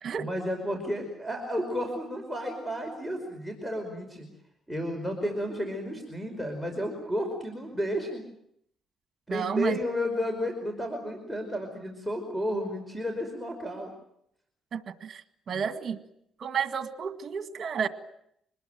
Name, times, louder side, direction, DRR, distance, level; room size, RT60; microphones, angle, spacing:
voice 1, 0.2-4.3 4.7-8.2 9.3-13.9 15.5-15.6, equal, ahead, 5.2 m, -32 dB
voice 2, 9.3-9.8 14.7-16.0 16.4-17.9, right 7 dB, 50° right, 1.9 m, -31 dB
25.5 x 20.5 x 9.1 m
cardioid pair, 90°, 0 cm